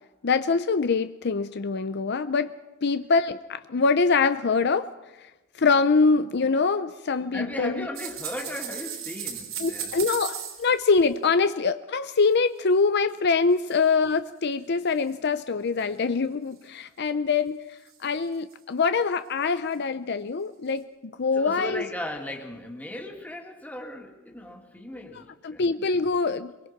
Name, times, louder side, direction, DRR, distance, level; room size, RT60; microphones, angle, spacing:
voice 1, 0.2-2.5 2.8-4.9 5.2-7.9 9.6-21.8 25.4-26.5, left 4 dB, 55° left, 12 dB, 0.6 m, -24 dB
voice 2, 7.3-10.0 21.3-25.9, left 1 dB, 10° left, 1 dB, 2.6 m, -37 dB
sound 1, 7.9-11.1 12.2-12.3 13.6-13.8 14.3-14.4 15.0-15.1 15.8-15.9 17.9-18.2 18.5-18.6 19.6-19.7, right 8 dB, 85° right, 3.4 m, -36 dB
23.5 x 22.5 x 5.9 m, 1.1 s
head